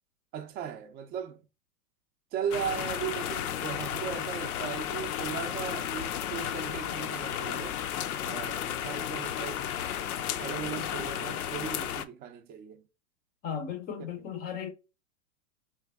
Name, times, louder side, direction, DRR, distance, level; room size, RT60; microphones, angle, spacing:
voice 1, 0.3-1.4 2.3-7.8 8.2-9.7 10.2-12.8, right 8 dB, 20° right, 0.5 m, -37 dB
sound 1, 2.5-12.1, left 10 dB, 70° left, 0.7 m, -33 dB
voice 2, 13.4-14.7, left 7 dB, 20° left, 0.6 m, -36 dB
3.3 x 3.3 x 3.4 m
hypercardioid pair, 120°, 46 cm